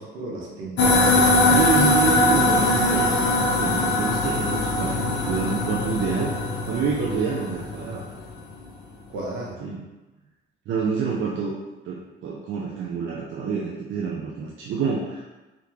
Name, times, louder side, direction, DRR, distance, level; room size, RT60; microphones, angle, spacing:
voice 1, 0.0-1.9 2.2-2.4 9.1-9.6, right 2 dB, 90° right, -3 dB, 1.1 m, -34 dB
sound 1, 0.8-8.4, left 2 dB, 70° left, 0.9 m, -21 dB
voice 2, 1.5-6.4 6.7-8.0 9.6-9.8 10.7-11.6 11.9-15.2, right 6 dB, 75° right, -3 dB, 0.6 m, -27 dB
3.5 x 3.0 x 3.6 m, 1.1 s
cardioid pair, 90°, 20 cm